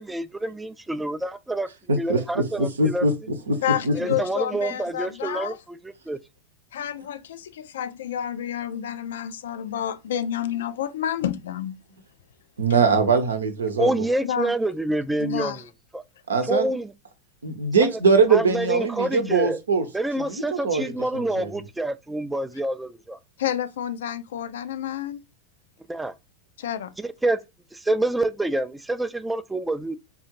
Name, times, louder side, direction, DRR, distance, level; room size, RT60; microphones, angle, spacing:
voice 1, 0.0-1.7 1.9-3.1 3.9-6.2 13.8-15.6 15.9-16.0 16.5-16.9 17.8-17.9 18.3-19.6 19.9-23.2 25.9-26.1 27.0-27.4 27.7-30.0, right 2 dB, 10° right, 0.3 m, -27 dB
voice 2, 1.9-3.1 3.5-3.9 12.6-14.0 16.3-16.7 17.4-19.9 20.2-21.5, right 4 dB, 80° right, 0.7 m, -22 dB
voice 3, 3.6-5.6 6.7-11.8 14.2-14.5 15.2-15.6 23.4-25.2 26.6-26.9, left 10 dB, 70° left, 0.4 m, -29 dB
3.7 x 2.4 x 2.9 m
figure-of-eight pair, 90°, 0 cm